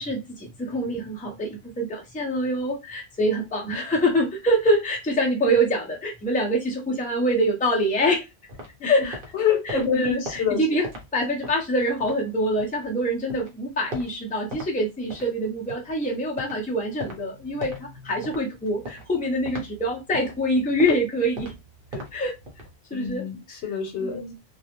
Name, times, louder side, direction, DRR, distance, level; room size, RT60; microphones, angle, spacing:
voice 1, 0.0-8.3 8.8-9.2 9.6-10.9 11.1-21.5 21.9-22.3 22.9-23.2 24.0-24.3, equal, 10° left, 0.4 m, -25 dB
sound 1, 8.5-12.9 13.2-14.7 15.0-22.7, equal, 55° right, 0.9 m, -40 dB
voice 2, 9.3-10.6 22.9-24.3, left 7 dB, 90° left, 1.0 m, -26 dB
2.3 x 2.0 x 2.9 m
omnidirectional pair, 1.1 m